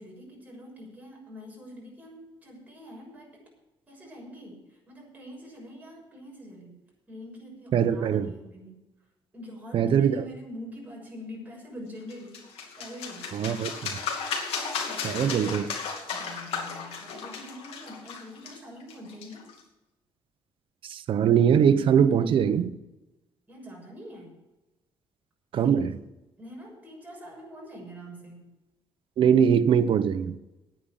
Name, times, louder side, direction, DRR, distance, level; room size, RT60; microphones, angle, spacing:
voice 1, 0.0-3.4 3.9-6.7 7.1-8.8 9.3-12.4 12.8-13.5 14.8-15.6 16.1-19.5 23.5-24.4 25.6-25.8 26.4-28.5, equal, 15° right, 6.5 m, -44 dB
voice 2, 7.7-8.3 9.7-10.2 13.3-14.0 15.0-15.7 20.8-22.7 25.5-25.9 29.2-30.4, right 8 dB, 65° right, 0.9 m, -22 dB
sound 1, 12.1-19.6, left 5 dB, 90° left, 2.6 m, -35 dB
10.0 x 9.3 x 9.1 m
cardioid pair, 125°, 10 cm